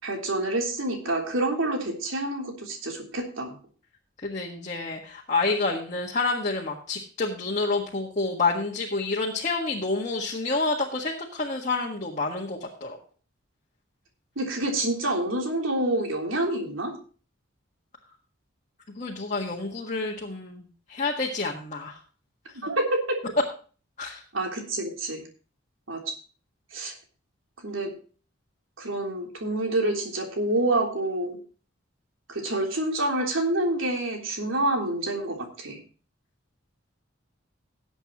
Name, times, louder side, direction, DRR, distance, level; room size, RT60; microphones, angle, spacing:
voice 1, 0.0-3.5 14.3-16.9 22.5-23.2 24.3-25.2 25.9-26.1 26.7-26.9 27.6-27.9 28.8-31.4 32.3-35.8, right 1 dB, 90° right, 1 dB, 3.4 m, -27 dB
voice 2, 4.2-13.0 19.0-22.0 24.0-24.2, left 3 dB, 40° left, -1 dB, 1.6 m, -28 dB
18.0 x 8.1 x 3.0 m, 0.38 s
head